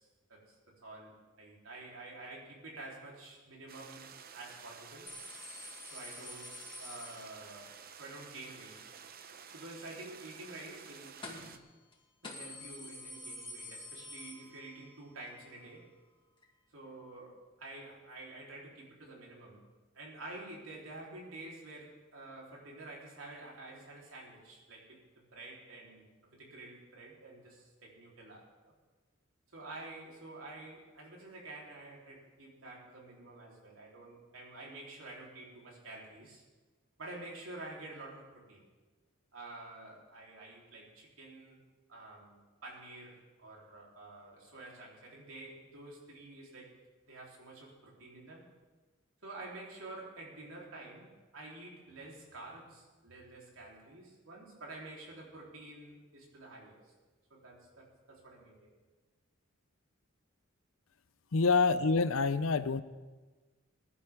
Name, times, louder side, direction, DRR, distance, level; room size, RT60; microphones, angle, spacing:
voice 1, 0.0-5.1 5.9-6.5 6.8-8.8 9.5-11.6 12.2-15.9 16.7-19.6 19.9-28.7 29.5-36.4 37.0-38.6 39.3-41.6 41.9-46.8 47.1-48.5 49.2-56.8 57.3-58.7 61.5-61.7, right 2 dB, 80° right, -3 dB, 3.8 m, -49 dB
sound 1, 3.7-11.6, right 7 dB, 45° right, 0.8 m, -52 dB
sound 2, 5.1-7.8 11.2-11.6 11.9-12.0 12.2-15.0 15.3-15.4 16.4-16.5, left 2 dB, 25° left, 2.2 m, -48 dB
voice 2, 61.3-62.8, left 4 dB, 85° left, 13 dB, 0.7 m, -27 dB
21.5 x 11.0 x 3.7 m, 1.3 s
head